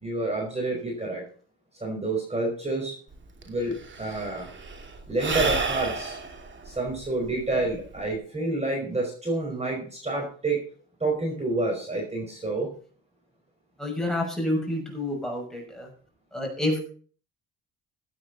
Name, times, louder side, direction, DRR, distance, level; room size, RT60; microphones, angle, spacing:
voice 1, 0.0-1.2 1.8-2.9 3.4-4.5 5.1-6.2 6.6-10.6 11.0-12.7, right 2 dB, 20° right, 0 dB, 5.1 m, -28 dB
Sigh / Breathing, 3.1-3.2 3.4-8.1, right 4 dB, 40° right, 2.7 m, -31 dB
voice 2, 13.8-15.9 16.3-16.8, left 1 dB, ahead, 0 dB, 6.2 m, -28 dB
16.5 x 9.1 x 4.2 m, 0.43 s
cardioid pair, 90°, 30 cm